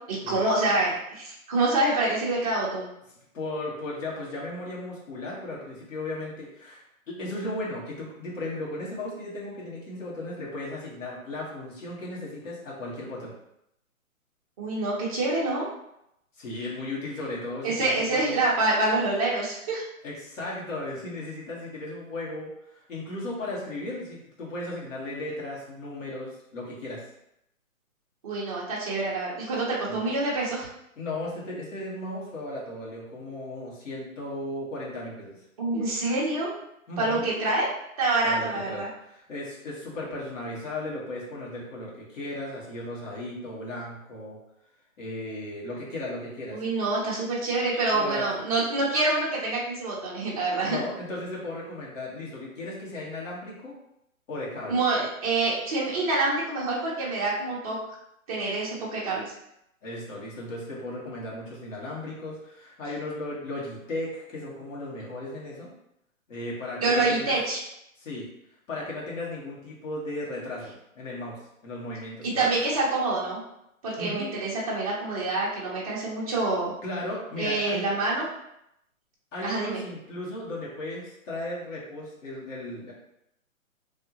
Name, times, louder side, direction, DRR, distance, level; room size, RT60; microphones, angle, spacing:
voice 1, 0.1-2.9 14.6-15.7 17.6-19.8 28.2-30.7 35.6-36.5 37.0-37.7 38.0-38.9 46.5-50.8 54.7-57.8 58.3-59.3 66.8-67.6 72.2-73.4 73.8-76.7 77.4-78.3 79.4-79.8, right 2 dB, 25° right, -5 dB, 0.7 m, -26 dB
voice 2, 3.3-13.3 16.4-18.4 20.0-27.0 29.9-30.0 31.0-35.4 36.9-37.2 38.2-44.4 45.0-46.6 47.9-48.3 50.6-53.8 54.3-54.8 59.8-65.7 66.3-67.4 68.0-68.3 68.7-72.5 74.0-74.3 76.8-77.9 79.3-82.9, left 1 dB, 60° left, -5 dB, 1.4 m, -36 dB
2.7 x 2.5 x 2.8 m, 0.79 s
hypercardioid pair, 155°, 42 cm